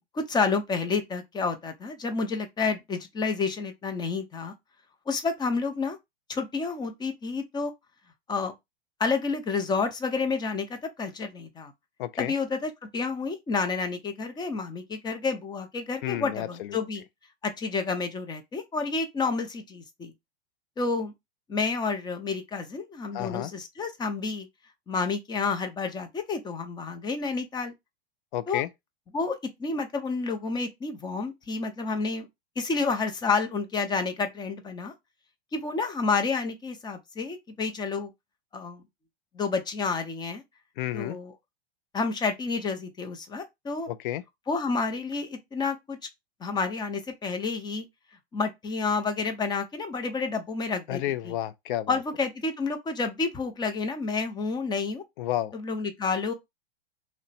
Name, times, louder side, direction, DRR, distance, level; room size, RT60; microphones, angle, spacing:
voice 1, 0.1-4.5 5.1-6.0 6.3-7.7 8.3-8.5 9.0-11.7 12.2-17.0 17.4-20.1 20.8-21.1 21.5-24.5 24.9-27.7 28.5-28.6 29.1-32.3 32.6-34.9 35.5-38.1 38.5-38.8 39.3-40.4 40.9-41.3 41.9-43.9 44.5-46.0 46.4-47.9 48.3-51.3 51.9-55.0 55.5-56.3, left 4 dB, 15° left, 0.6 m, -29 dB
voice 2, 12.0-12.3 16.0-16.8 23.1-23.5 28.3-28.7 40.8-41.2 43.9-44.2 50.9-51.9 55.2-55.5, left 13 dB, 55° left, 0.5 m, -31 dB
2.8 x 2.1 x 4.1 m
hypercardioid pair, 110°, 31 cm